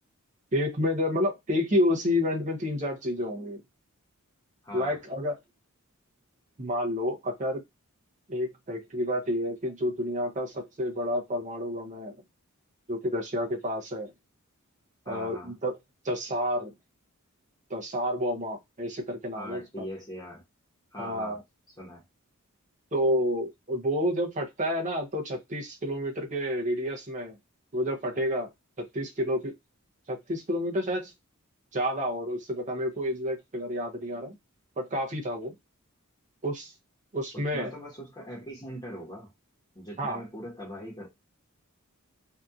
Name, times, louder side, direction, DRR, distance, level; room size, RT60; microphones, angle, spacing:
voice 1, 0.5-3.6 4.7-5.4 6.6-7.6 8.3-12.1 12.9-14.1 15.1-15.8 16.0-16.7 17.7-19.6 21.0-21.4 22.9-27.3 27.7-28.5 28.8-29.5 30.1-31.1 31.7-34.3 34.8-35.5 36.4-36.7 37.1-37.7 40.0-40.2, equal, 35° right, 0.7 m, -29 dB
voice 2, 4.6-5.0 15.0-15.5 19.3-20.4 20.9-21.4 21.8-22.0 37.3-39.3 39.7-41.1, equal, 20° left, 1.1 m, -41 dB
2.7 x 2.5 x 2.3 m
head